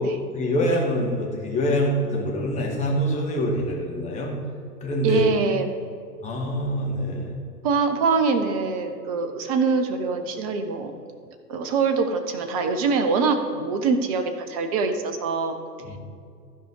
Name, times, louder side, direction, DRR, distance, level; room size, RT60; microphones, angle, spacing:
voice 1, 0.0-4.3 4.8-5.2 6.2-7.4 15.8-16.0, equal, 15° left, -2 dB, 1.6 m, -25 dB
voice 2, 5.0-5.7 7.6-10.9 11.5-15.6, right 4 dB, 25° right, 7 dB, 0.6 m, -24 dB
14.0 x 5.0 x 3.9 m, 2.3 s
figure-of-eight pair, 110°, 48 cm